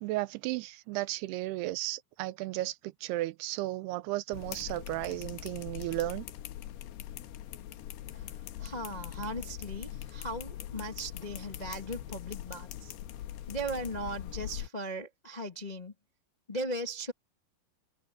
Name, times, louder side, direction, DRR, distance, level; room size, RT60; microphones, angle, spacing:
voice 1, 0.0-6.3, right 17 dB, 90° right, 2.7 m, -34 dB
sound 1, 4.3-14.7, left 12 dB, 90° left, 3.1 m, -42 dB
voice 2, 8.1-12.9 13.5-15.9 16.5-17.1, right 1 dB, 30° left, 0.8 m, -38 dB
omnidirectional pair, 4.5 m